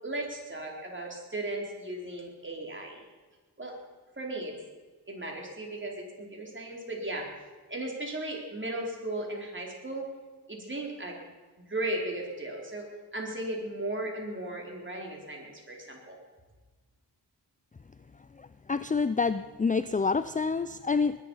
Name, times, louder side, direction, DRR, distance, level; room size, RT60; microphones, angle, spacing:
voice 1, 0.0-3.0 3.6-3.8 4.2-4.5 5.1-7.3 7.7-10.1 10.5-11.2 11.7-12.9 13.1-16.2, right 1 dB, 30° right, -1 dB, 4.4 m, -36 dB
voice 2, 18.7-21.2, left 4 dB, 20° left, 13 dB, 0.4 m, -27 dB
21.0 x 11.0 x 5.7 m, 1.3 s
cardioid pair, 65°, 40 cm